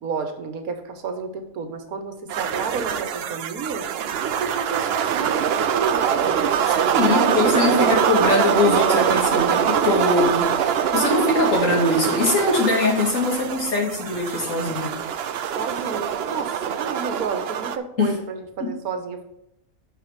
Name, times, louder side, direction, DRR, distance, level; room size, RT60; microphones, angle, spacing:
voice 1, 0.0-3.8 4.2-7.2 7.6-8.3 15.6-19.2, right 5 dB, 85° right, 7 dB, 1.5 m, -30 dB
sound 1, 2.3-17.8, right 8 dB, 65° right, 0.6 m, -23 dB
voice 2, 6.9-14.9 18.0-18.1 18.6-18.7, left 2 dB, 60° left, -1 dB, 2.5 m, -22 dB
6.0 x 5.9 x 5.9 m, 0.79 s
omnidirectional pair, 1.5 m